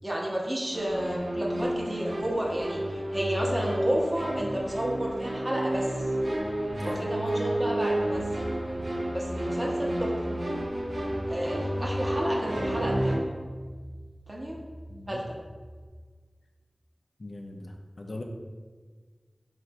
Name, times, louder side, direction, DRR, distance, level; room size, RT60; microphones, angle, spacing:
voice 1, 0.0-5.9 6.8-8.2 9.1-10.1 11.3-13.3 14.3-14.6 15.1-15.4, right 1 dB, 25° right, -3 dB, 0.9 m, -31 dB
sound 1, 0.7-13.2, right 1 dB, 65° right, 0.5 m, -30 dB
voice 2, 6.8-7.1 14.9-15.2 17.2-18.2, left 2 dB, 70° left, 1 dB, 0.4 m, -41 dB
sound 2, 8.1-15.9, equal, 5° right, 0.6 m, -43 dB
3.8 x 2.4 x 4.5 m, 1.5 s
wide cardioid pair, 45°, 0 cm